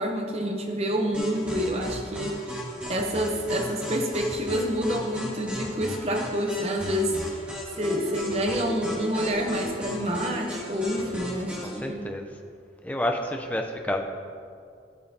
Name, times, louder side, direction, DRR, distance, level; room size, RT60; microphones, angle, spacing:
voice 1, 0.0-2.6 2.9-7.2 7.8-12.1, equal, 35° right, 3 dB, 0.8 m, -28 dB
sound 1, 1.1-11.8, equal, 5° right, 1.7 m, -37 dB
voice 2, 11.6-12.3 12.8-14.0, left 1 dB, 10° left, 3 dB, 0.5 m, -29 dB
15.0 x 5.5 x 2.8 m, 2.2 s
head